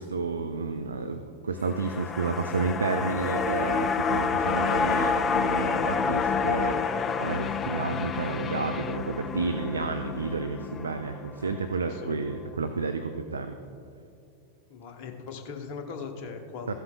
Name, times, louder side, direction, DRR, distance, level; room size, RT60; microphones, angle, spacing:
voice 1, 0.0-6.8 7.2-13.6 16.7-16.8, right 4 dB, 75° right, 7 dB, 0.4 m, -31 dB
sound 1, 1.6-12.0 12.3-12.4, left 5 dB, 25° left, 0.3 m, -29 dB
voice 2, 11.8-12.2 14.7-16.7, left 5 dB, 45° left, 4 dB, 1.0 m, -39 dB
14.0 x 8.2 x 2.3 m, 2.5 s
figure-of-eight pair, 90°, 0 cm